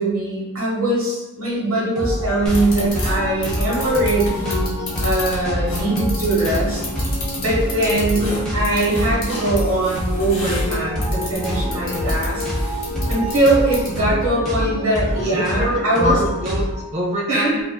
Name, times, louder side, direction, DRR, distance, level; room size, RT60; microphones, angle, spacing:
voice 1, 0.0-6.8 7.3-12.4 12.8-16.1 17.3-17.6, right 2 dB, 75° right, -4 dB, 1.0 m, -21 dB
sound 1, 1.9-16.9, equal, 5° left, 0.6 m, -26 dB
sound 2, 2.5-14.1, left 1 dB, 85° left, 0.9 m, -31 dB
sound 3, 2.8-16.7, equal, 45° left, 0.4 m, -37 dB
voice 2, 15.2-17.6, left 1 dB, 30° right, -1 dB, 0.3 m, -25 dB
2.6 x 2.1 x 2.2 m, 0.98 s
head